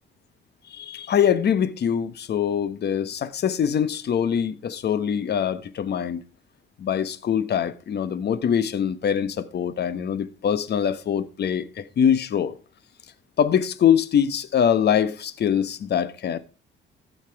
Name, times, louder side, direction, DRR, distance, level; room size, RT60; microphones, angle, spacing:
voice 1, 0.7-6.2 6.8-12.6 13.4-16.4, left 8 dB, 55° left, 1.1 m, -23 dB
14.5 x 5.8 x 4.6 m
cardioid pair, 90°, 20 cm